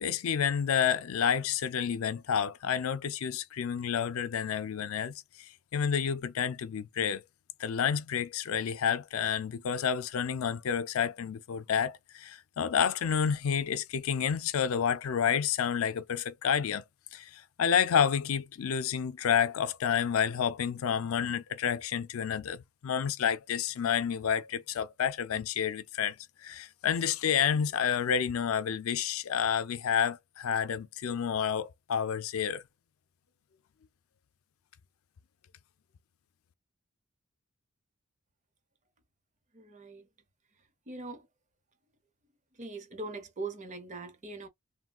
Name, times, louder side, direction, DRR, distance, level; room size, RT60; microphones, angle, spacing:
voice 1, 0.0-5.1 5.7-7.2 7.6-16.8 17.1-32.6, left 7 dB, 90° left, 0.4 m, -29 dB
voice 2, 39.5-40.1 40.9-41.3 42.5-44.5, right 3 dB, 35° right, 0.8 m, -41 dB
3.5 x 2.2 x 2.3 m
head